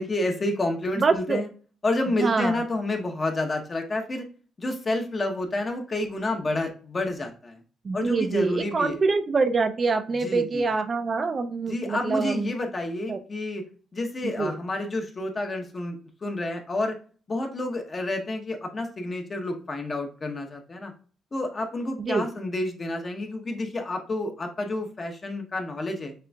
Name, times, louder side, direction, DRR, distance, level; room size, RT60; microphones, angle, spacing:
voice 1, 0.0-1.5 1.8-4.2 4.6-7.6 7.9-9.0 10.2-10.7 11.7-13.6 13.9-17.0 17.3-20.9 21.3-26.1, left 2 dB, 35° left, 4 dB, 0.8 m, -29 dB
voice 2, 1.0-1.4 2.1-2.6 7.8-12.5 13.1-13.2 14.2-14.5 22.0-22.3, right 4 dB, 40° right, 8 dB, 0.4 m, -25 dB
6.5 x 2.4 x 2.2 m, 0.40 s
cardioid pair, 90°, 0 cm